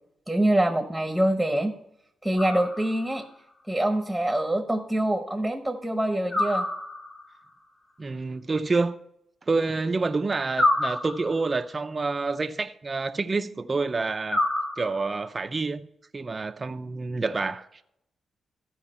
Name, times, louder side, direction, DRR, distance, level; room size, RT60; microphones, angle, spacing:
voice 1, 0.3-1.8 2.2-3.2 3.7-6.6, right 1 dB, ahead, 1.0 m, -25 dB
sound 1, 2.4-3.2 6.3-7.3 10.5-11.6 14.3-15.3, left 1 dB, 35° left, 1.3 m, -28 dB
voice 2, 8.0-9.0 9.5-14.4 14.8-15.9 16.1-17.7, right 3 dB, 30° right, 0.5 m, -28 dB
14.0 x 4.8 x 4.3 m
cardioid pair, 105°, 0 cm